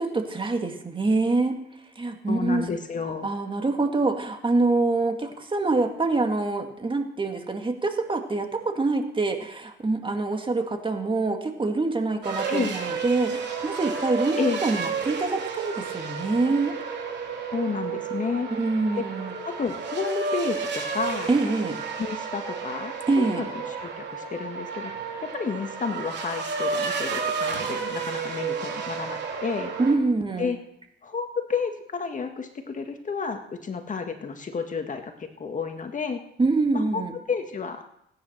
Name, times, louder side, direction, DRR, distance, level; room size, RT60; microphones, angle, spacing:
voice 1, 0.0-1.6 2.0-2.6 3.2-16.7 18.5-19.3 21.3-21.8 23.1-23.4 29.8-30.5 36.4-37.1, right 3 dB, 25° right, 4 dB, 2.4 m, -25 dB
voice 2, 2.3-3.3 12.5-12.7 14.4-14.6 17.5-18.5 19.5-21.3 22.0-24.9 25.3-29.7 30.4-30.6 31.0-36.2 36.7-37.8, left 5 dB, 40° left, 6 dB, 1.8 m, -31 dB
sound 1, 12.2-29.9, right 5 dB, 60° right, 3.8 m, -31 dB
17.5 x 10.0 x 6.7 m, 0.77 s
cardioid pair, 90°, 20 cm